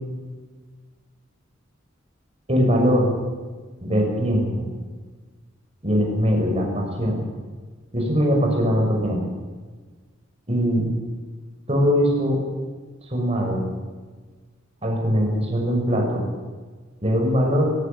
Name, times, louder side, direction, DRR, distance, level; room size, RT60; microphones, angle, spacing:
voice 1, 2.5-3.1 3.8-4.7 5.8-7.2 7.9-9.2 10.5-10.8 11.7-12.4 13.1-13.7 14.8-16.3 17.0-17.8, equal, 30° right, 0 dB, 6.5 m, -21 dB
18.5 x 17.0 x 8.8 m, 1.4 s
head